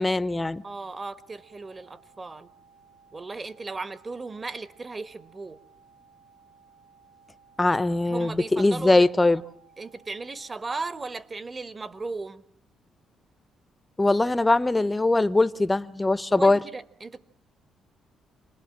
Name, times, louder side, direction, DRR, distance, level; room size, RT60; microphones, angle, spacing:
voice 1, 0.0-0.6 7.6-9.4 14.0-16.6, left 2 dB, 15° left, 0.9 m, -21 dB
voice 2, 0.6-2.5 3.1-5.6 8.0-9.1 9.8-12.4 16.3-17.2, right 3 dB, 30° right, 1.5 m, -36 dB
sound 1, 0.7-10.7, right 6 dB, 70° right, 7.7 m, -58 dB
28.0 x 20.5 x 7.5 m
cardioid pair, 90°, 0 cm